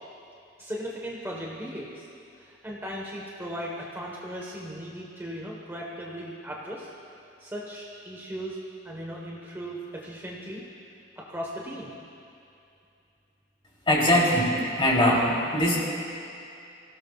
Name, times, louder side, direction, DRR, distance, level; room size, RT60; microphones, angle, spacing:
voice 1, 0.6-2.1 2.4-6.9 7.4-8.6 8.8-10.6 11.2-11.9, equal, 15° right, -3 dB, 1.3 m, -37 dB
voice 2, 13.9-15.8, left 1 dB, 30° left, -4 dB, 3.2 m, -22 dB
25.0 x 17.0 x 2.4 m, 2.6 s
head